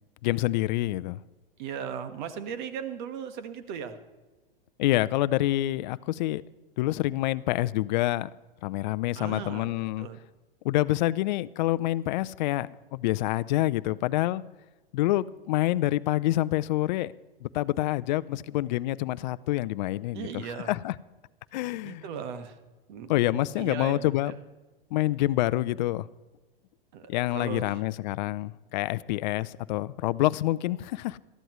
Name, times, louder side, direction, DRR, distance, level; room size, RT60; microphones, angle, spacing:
voice 1, 0.2-1.2 4.8-6.4 6.8-8.3 8.6-10.1 10.6-14.4 14.9-17.1 17.4-20.3 20.7-20.9 21.5-22.0 23.1-24.3 24.9-26.1 27.1-31.2, left 16 dB, 50° left, 0.5 m, -27 dB
voice 2, 1.6-4.0 9.1-10.2 20.1-20.8 21.8-22.6 22.9-24.4 26.9-27.8, right 7 dB, 55° right, 1.5 m, -38 dB
19.0 x 13.5 x 3.1 m
hypercardioid pair, 120°, 29 cm